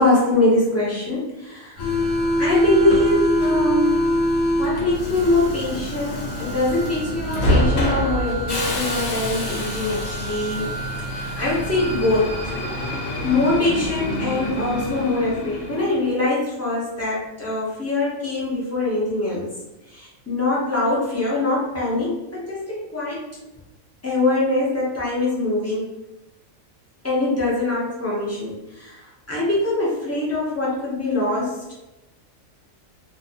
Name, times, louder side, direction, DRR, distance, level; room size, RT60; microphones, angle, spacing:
voice 1, 0.0-1.8 2.4-4.1 4.6-10.7 11.1-12.6 13.2-19.5 19.9-23.2 24.0-25.9 27.0-29.0 29.3-31.7, left 2 dB, 20° left, -7 dB, 0.4 m, -23 dB
Subway metro underground, 1.8-16.1, equal, 80° left, 1.0 m, -24 dB
2.6 x 2.1 x 2.7 m, 1.0 s
omnidirectional pair, 1.4 m